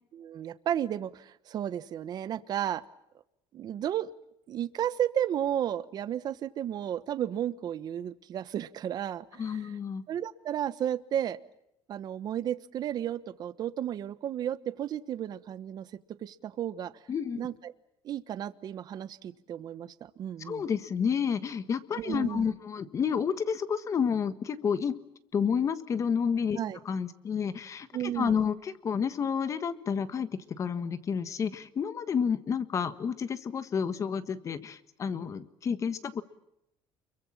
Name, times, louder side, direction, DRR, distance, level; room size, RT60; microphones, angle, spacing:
voice 1, 0.1-2.8 3.5-4.1 4.5-9.7 10.1-11.4 11.9-15.9 16.2-16.9 17.4-17.7 18.0-20.7 22.0-22.5 26.6-26.8 27.9-28.4, right 10 dB, 45° right, 14 dB, 1.1 m, -33 dB
voice 2, 9.4-10.0 17.1-17.5 20.4-24.9 25.3-26.6 26.8-36.2, left 6 dB, 30° left, 12 dB, 1.5 m, -30 dB
29.0 x 23.0 x 7.3 m, 0.83 s
cardioid pair, 155°, 10 cm